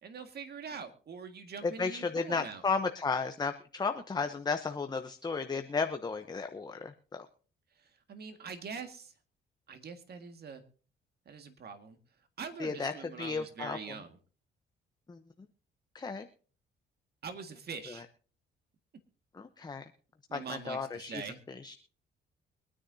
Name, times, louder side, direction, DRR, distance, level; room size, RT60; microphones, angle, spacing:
voice 1, 0.0-2.6 7.8-9.1 9.7-10.6 11.3-12.0 12.4-14.2 17.2-18.1 20.3-21.4, right 5 dB, 55° right, 7 dB, 1.9 m, -43 dB
voice 2, 1.6-7.3 12.6-13.8 15.1-15.2 15.9-16.3 17.9-18.0 19.3-19.8 20.3-21.7, left 4 dB, 20° left, 7 dB, 0.9 m, -34 dB
24.0 x 9.9 x 2.8 m, 0.40 s
cardioid pair, 90°, 20 cm